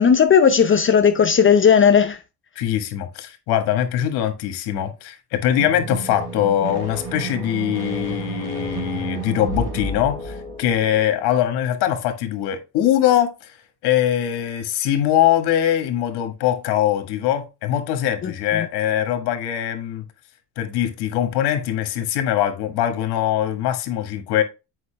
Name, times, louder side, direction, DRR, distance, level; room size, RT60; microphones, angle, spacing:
voice 1, 0.0-2.2 18.2-18.7, left 7 dB, 30° left, 0.7 m, -15 dB
voice 2, 2.5-13.6 13.8-20.0 20.6-24.4, left 11 dB, 85° left, 1.6 m, -22 dB
sound 1, 5.5-11.1, right 3 dB, 60° right, 3.5 m, -31 dB
8.1 x 5.4 x 3.4 m
cardioid pair, 95°, 39 cm